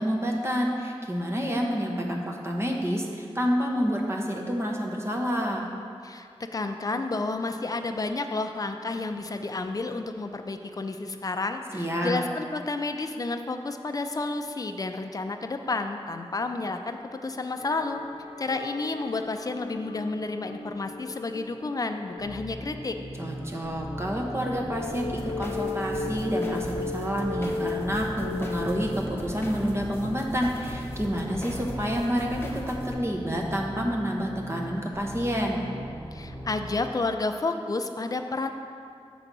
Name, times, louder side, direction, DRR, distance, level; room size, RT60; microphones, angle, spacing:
voice 1, 0.0-5.6 11.7-12.2 23.2-35.6, equal, 25° right, 0 dB, 0.9 m, -28 dB
voice 2, 6.0-18.0 18.4-23.0 36.1-38.5, left 3 dB, 35° left, 6 dB, 0.4 m, -31 dB
sound 1, 17.6-29.8, left 3 dB, 80° left, 0.7 m, -37 dB
sound 2, 22.2-36.8, right 1 dB, 70° right, 1.5 m, -39 dB
sound 3, 24.9-32.9, left 1 dB, 20° left, 1.0 m, -40 dB
7.7 x 4.0 x 6.1 m, 2.4 s
wide cardioid pair, 85°, 10 cm